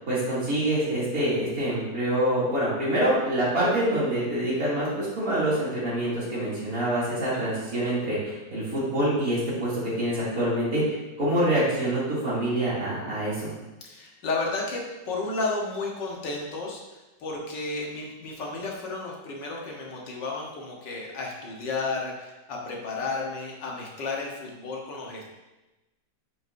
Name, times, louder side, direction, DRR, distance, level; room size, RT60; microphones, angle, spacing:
voice 1, 0.1-13.5, right 1 dB, 50° right, -9 dB, 3.1 m, -26 dB
voice 2, 13.8-25.3, left 3 dB, 80° left, -1 dB, 1.9 m, -32 dB
9.2 x 5.4 x 2.6 m, 1.1 s
omnidirectional pair, 1.9 m